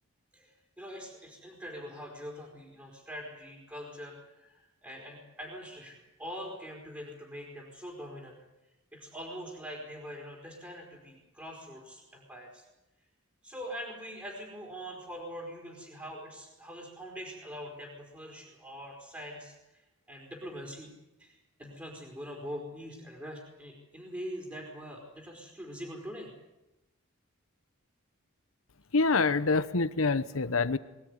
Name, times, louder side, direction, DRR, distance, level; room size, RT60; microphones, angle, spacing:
voice 1, 0.3-8.4 8.9-12.7 13.4-20.9 21.2-26.3, equal, 10° right, -2 dB, 4.5 m, -43 dB
voice 2, 28.9-30.8, left 3 dB, 85° left, 14 dB, 1.1 m, -26 dB
23.5 x 17.5 x 9.7 m, 1.0 s
head